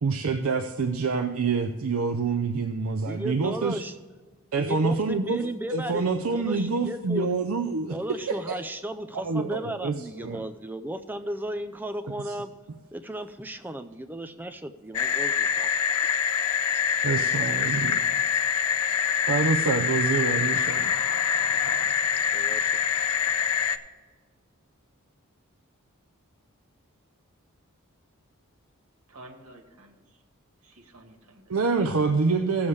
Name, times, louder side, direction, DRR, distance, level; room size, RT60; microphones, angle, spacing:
voice 1, 0.0-3.8 4.5-5.4 5.7-8.6 9.1-10.4 12.3-12.4 17.0-18.0 19.3-20.9 31.5-32.7, right 4 dB, 70° right, 4 dB, 0.6 m, -26 dB
voice 2, 3.1-3.9 4.6-7.3 7.9-12.5 12.9-15.7 22.3-22.9, right 1 dB, 10° right, 8 dB, 0.4 m, -35 dB
sound 1, 14.9-23.8, left 8 dB, 85° left, 0.5 m, -25 dB
voice 3, 29.1-30.2 30.6-31.6, right 1 dB, 85° right, 2 dB, 1.6 m, -51 dB
16.5 x 7.1 x 3.3 m, 1.4 s
head